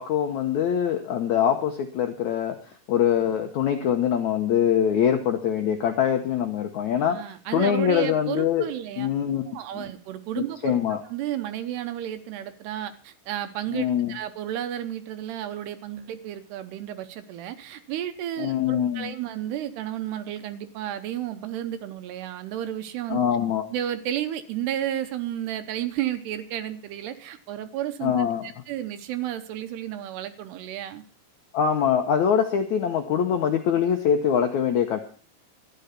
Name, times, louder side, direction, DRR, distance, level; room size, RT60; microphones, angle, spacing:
voice 1, 0.0-2.6 2.9-8.7 9.0-9.4 9.8-9.9 10.4-11.0 13.7-14.1 18.4-19.1 23.1-23.7 28.0-28.5 31.5-35.0, left 8 dB, 90° left, 5 dB, 1.6 m, -23 dB
voice 2, 6.9-9.1 9.5-23.2 23.7-28.1 28.4-31.0, right 11 dB, 80° right, 9 dB, 2.9 m, -32 dB
13.5 x 10.5 x 5.8 m, 0.41 s
omnidirectional pair, 4.9 m